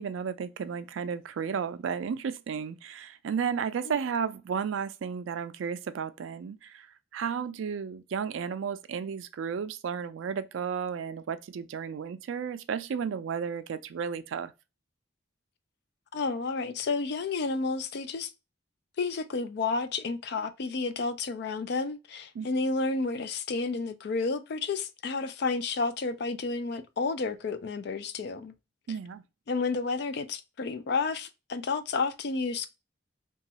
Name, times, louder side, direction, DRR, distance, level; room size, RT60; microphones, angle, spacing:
voice 1, 0.0-6.9 7.1-14.5 22.4-22.5 28.9-29.2, right 6 dB, 75° right, 0.3 m, -33 dB
voice 2, 16.1-18.3 19.0-28.5 29.5-32.7, left 4 dB, 55° left, 0.4 m, -31 dB
3.0 x 2.3 x 2.7 m
head